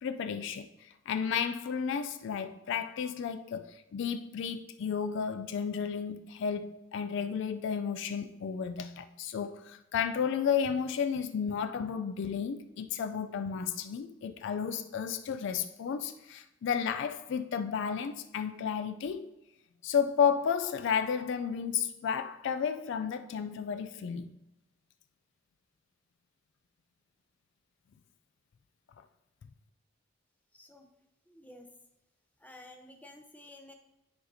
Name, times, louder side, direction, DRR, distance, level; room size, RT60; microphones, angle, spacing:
voice 1, 0.0-19.3 19.8-24.3, left 7 dB, 65° left, 0.3 m, -32 dB
voice 2, 30.5-30.9 31.3-31.7 32.4-33.7, left 1 dB, 10° left, 0.6 m, -52 dB
10.0 x 4.2 x 2.7 m
head